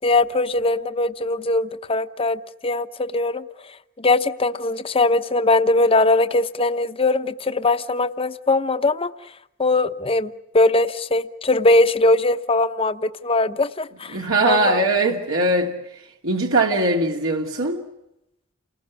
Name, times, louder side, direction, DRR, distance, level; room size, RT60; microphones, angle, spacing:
voice 1, 0.0-3.4 4.0-9.1 9.6-14.2 14.4-14.9, left 2 dB, 25° left, 0.9 m, -20 dB
voice 2, 14.1-15.7 16.2-17.8, right 2 dB, 75° right, 2.8 m, -20 dB
29.5 x 20.0 x 8.4 m
head